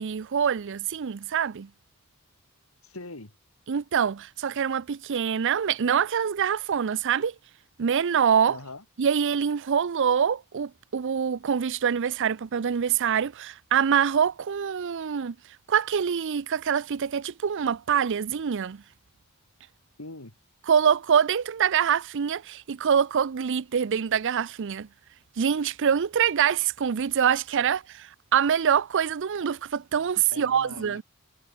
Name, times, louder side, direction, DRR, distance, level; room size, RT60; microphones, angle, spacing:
voice 1, 0.0-1.7 3.7-7.3 7.8-8.6 9.0-15.4 15.7-18.8 20.7-24.9 25.4-31.0, right 7 dB, 60° right, 0.5 m, -25 dB
voice 2, 2.8-3.3 8.5-8.8 20.0-20.3 30.3-31.0, left 2 dB, 75° left, 3.1 m, -41 dB
head